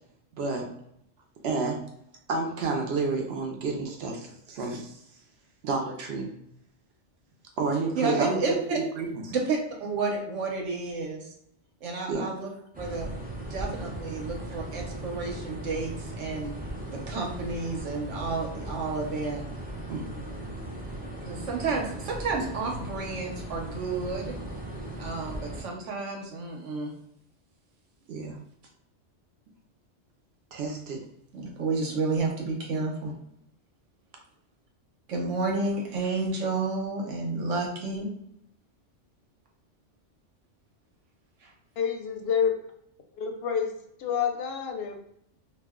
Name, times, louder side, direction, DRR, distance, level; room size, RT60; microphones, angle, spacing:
voice 1, 0.3-0.7 1.4-1.8 2.3-5.0 5.6-6.3 7.6-8.4 8.7-9.1 12.1-12.2 19.9-20.2 28.1-28.4 30.5-31.0, right 4 dB, 65° right, 2 dB, 0.8 m, -30 dB
voice 2, 7.9-8.8 9.3-11.3 11.8-12.5 12.8-16.5 16.9-19.4 21.2-24.3 25.0-26.9 31.3-33.1 35.1-38.1 41.4-41.5, right 3 dB, 85° right, 0 dB, 1.1 m, -31 dB
sound 1, 12.7-25.6, right 1 dB, 15° right, 0.3 m, -38 dB
voice 3, 41.8-42.5 43.2-43.7 44.0-44.9, left 7 dB, 65° left, 4 dB, 0.7 m, -28 dB
2.5 x 2.1 x 3.5 m, 0.75 s
omnidirectional pair, 1.2 m